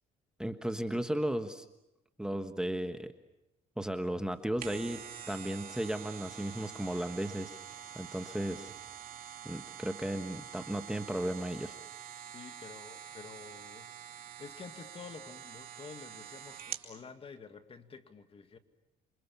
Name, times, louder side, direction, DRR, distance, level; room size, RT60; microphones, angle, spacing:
voice 1, 0.4-1.6 2.2-3.1 3.8-7.6 7.9-8.7 9.4-11.8, right 1 dB, 5° right, 7 dB, 1.3 m, -35 dB
sound 1, 4.3-16.9 17.4-17.5, right 9 dB, 55° right, 2.8 m, -46 dB
sound 2, 4.5-9.9, right 6 dB, 35° right, 3.3 m, -62 dB
voice 2, 12.3-18.6, left 5 dB, 35° left, 8 dB, 2.1 m, -50 dB
29.0 x 26.0 x 7.1 m, 0.87 s
cardioid pair, 110°, 17 cm